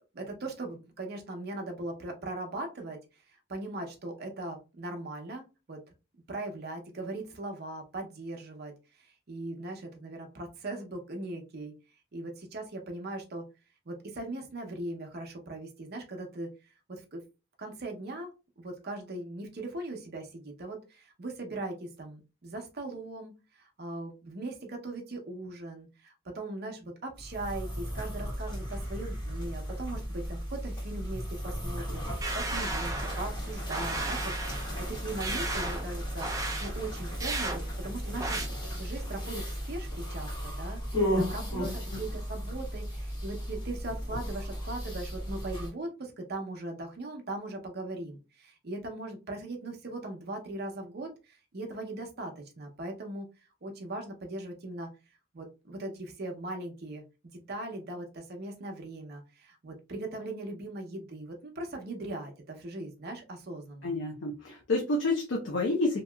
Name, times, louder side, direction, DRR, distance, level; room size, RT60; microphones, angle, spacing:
voice 1, 0.1-3.0 3.5-5.8 6.3-11.7 12.1-13.4 13.9-16.5 16.9-17.2 17.6-18.3 18.6-36.3 36.6-38.4 38.8-53.3 53.6-54.9 55.3-57.0 57.5-63.9, right 2 dB, 50° right, 3 dB, 0.7 m, -39 dB
sound 1, 27.2-45.7, equal, 25° left, 1.6 m, -35 dB
sound 2, 32.2-33.3 33.7-34.7 35.2-35.9 36.2-36.7 37.2-37.6 38.2-38.5, right 2 dB, 15° right, 0.4 m, -34 dB
voice 2, 41.6-42.0 63.8-66.0, left 2 dB, 65° left, 0 dB, 0.6 m, -29 dB
2.8 x 2.8 x 2.2 m, 0.30 s
head